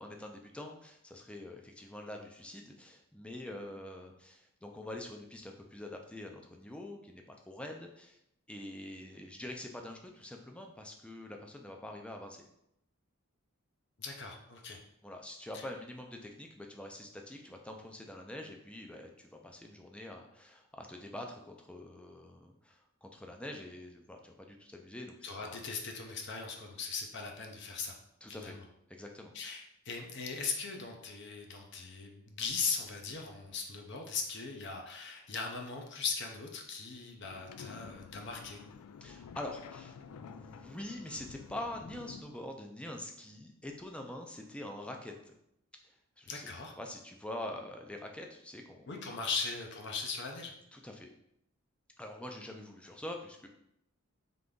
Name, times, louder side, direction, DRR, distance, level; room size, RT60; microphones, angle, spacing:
voice 1, 0.0-8.2 8.5-12.4 15.0-25.6 28.2-28.6 28.9-29.3 39.0-45.4 45.8-46.5 46.8-48.9 50.7-51.1 52.0-53.5, left 1 dB, 5° left, 2 dB, 0.4 m, -45 dB
voice 2, 14.0-14.8 15.5-15.7 25.2-28.0 28.3-28.6 29.3-38.6 46.3-46.7 48.9-50.5, left 5 dB, 50° left, 2 dB, 0.7 m, -39 dB
sound 1, 37.2-42.2, left 6 dB, 85° left, 0.3 m, -50 dB
3.8 x 3.3 x 3.7 m, 0.79 s
head